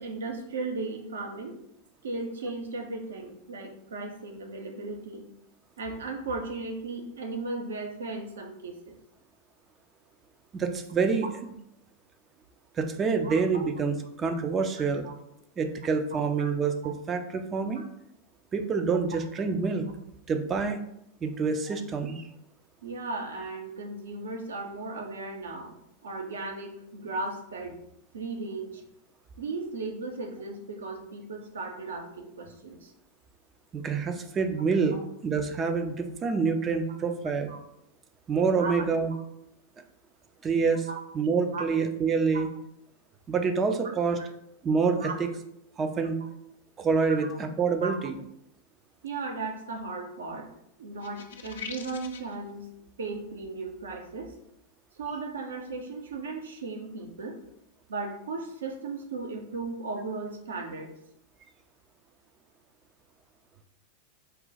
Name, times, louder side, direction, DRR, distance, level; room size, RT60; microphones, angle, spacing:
voice 1, 0.0-1.6 2.0-5.3 5.8-9.0 13.2-13.7 15.0-15.1 16.1-16.5 16.8-16.9 17.8-17.9 22.8-25.8 26.0-27.8 28.1-28.8 29.4-32.9 34.9-35.0 37.5-37.6 38.6-38.7 40.9-41.0 41.5-41.6 45.0-45.1 47.1-47.3 47.8-47.9 49.0-50.5 50.8-52.7 53.0-54.3 55.0-57.4 57.9-60.9, right 3 dB, 65° right, 3 dB, 0.7 m, -36 dB
voice 2, 10.5-11.5 12.7-15.1 15.6-17.8 18.5-19.9 20.3-20.8 21.2-22.3 33.7-37.5 38.3-39.1 40.4-40.9 41.1-42.5 43.3-44.2 44.6-45.3 45.8-46.2 46.8-48.2, right 5 dB, 25° right, 6 dB, 0.4 m, -27 dB
sound 1, 51.0-52.3, left 6 dB, 60° left, 0.4 m, -41 dB
3.9 x 2.2 x 4.0 m, 0.76 s
figure-of-eight pair, 90°, 0 cm